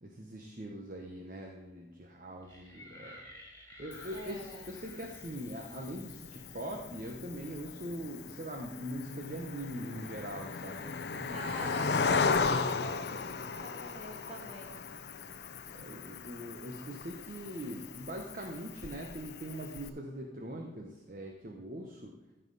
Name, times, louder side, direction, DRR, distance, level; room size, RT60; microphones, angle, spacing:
voice 1, 0.0-3.2 3.8-11.5 15.7-22.1, right 1 dB, 50° right, 1 dB, 1.0 m, -42 dB
sound 1, 2.4-7.7, left 1 dB, 15° left, 2.7 m, -54 dB
Cricket, 3.9-19.9, left 4 dB, 70° left, 0.6 m, -37 dB
voice 2, 4.1-4.7 11.3-14.7, right 1 dB, 35° right, -2 dB, 2.6 m, -45 dB
14.5 x 5.7 x 4.1 m, 1.1 s
head